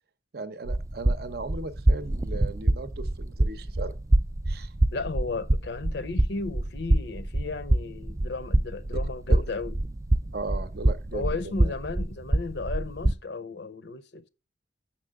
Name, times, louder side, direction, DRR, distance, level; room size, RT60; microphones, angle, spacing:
voice 1, 0.3-4.0 4.5-4.7 9.3-9.4 10.3-11.7, right 3 dB, 55° right, 0.7 m, -37 dB
sound 1, 0.7-13.2, right 1 dB, 15° right, 0.3 m, -26 dB
voice 2, 4.9-9.7 11.1-14.3, left 3 dB, 65° left, 0.6 m, -34 dB
7.4 x 5.8 x 3.5 m
head